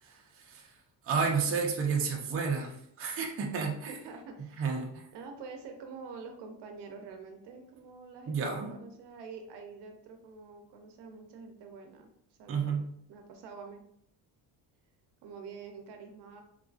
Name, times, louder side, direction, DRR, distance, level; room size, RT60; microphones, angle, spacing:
voice 1, 0.0-0.8 1.0-3.9 4.4-5.0 8.3-8.8 12.5-12.9, right 5 dB, 30° right, 0 dB, 0.5 m, -31 dB
voice 2, 3.9-4.7 5.1-8.4 8.7-12.1 12.4-12.8 13.1-13.8 15.2-16.4, right 5 dB, 70° right, 4 dB, 0.7 m, -46 dB
3.8 x 2.4 x 2.3 m, 0.71 s
cardioid pair, 120°, 43 cm